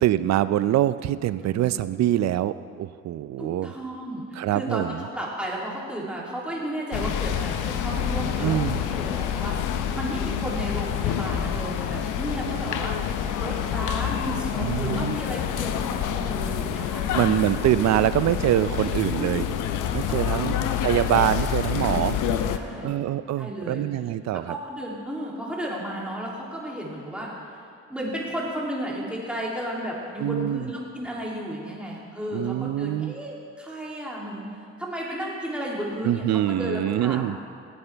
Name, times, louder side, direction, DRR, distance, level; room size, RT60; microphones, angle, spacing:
voice 1, 0.0-3.7 4.4-5.0 8.4-8.8 14.6-15.2 17.1-19.4 19.9-20.6 20.8-22.2 22.8-24.5 30.2-30.7 32.3-33.2 36.0-37.4, right 12 dB, 60° right, 14 dB, 0.5 m, -24 dB
voice 2, 3.4-4.8 5.1-17.0 17.9-18.4 19.0-19.4 19.8-20.7 22.5-22.9 23.4-23.8 24.5-27.6 27.9-34.4 34.8-37.3, equal, 5° right, -5 dB, 2.9 m, -33 dB
sound 1, 6.9-22.6, left 9 dB, 90° left, 0.7 m, -27 dB
18.0 x 8.5 x 3.4 m, 2.3 s
cardioid pair, 90°, 30 cm